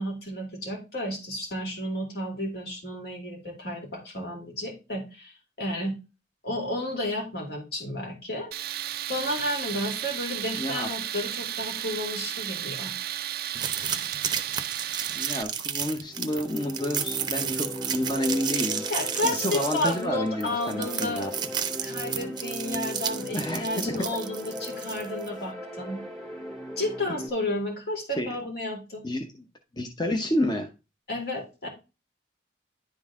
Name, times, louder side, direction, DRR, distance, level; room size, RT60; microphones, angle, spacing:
voice 1, 0.0-6.0 6.4-8.5 9.1-12.9 18.9-21.3 21.8-26.0 26.8-29.0 31.1-31.7, left 1 dB, 60° left, 1 dB, 2.5 m, -32 dB
Tools, 8.5-15.4, right 12 dB, 55° right, 0.3 m, -33 dB
voice 2, 10.6-10.9 15.1-18.8 19.2-21.3 23.3-24.0 28.1-28.3 29.0-29.2 29.7-30.7, left 1 dB, 25° left, 3 dB, 0.8 m, -29 dB
sound 1, 13.5-25.3, right 7 dB, 25° right, 0.7 m, -32 dB
sound 2, 16.1-27.3, equal, ahead, 1.3 m, -38 dB
10.5 x 3.9 x 3.6 m, 0.29 s
head